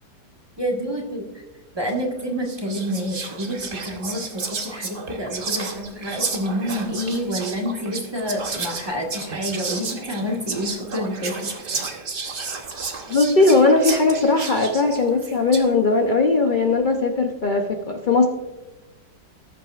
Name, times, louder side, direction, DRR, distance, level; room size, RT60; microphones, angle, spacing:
voice 1, 0.6-1.3 1.7-11.4, equal, 15° right, -1 dB, 1.4 m, -28 dB
Whispering, 1.9-2.1 2.5-15.7, right 4 dB, 40° right, 0.9 m, -32 dB
voice 2, 13.1-18.3, left 3 dB, 75° left, 3 dB, 0.4 m, -19 dB
19.0 x 7.6 x 2.4 m, 1.1 s
omnidirectional pair, 1.9 m